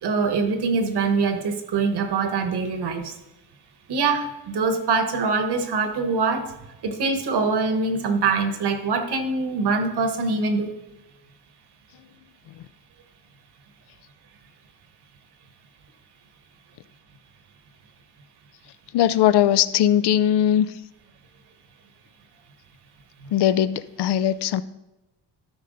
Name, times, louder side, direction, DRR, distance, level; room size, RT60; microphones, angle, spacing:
voice 1, 0.0-3.1 3.9-6.4 6.8-10.7, right 4 dB, 70° right, 6 dB, 1.2 m, -23 dB
voice 2, 18.9-20.7 23.3-24.6, left 11 dB, 75° left, 16 dB, 0.5 m, -19 dB
12.5 x 5.6 x 3.9 m, 0.98 s
wide cardioid pair, 165°, 41 cm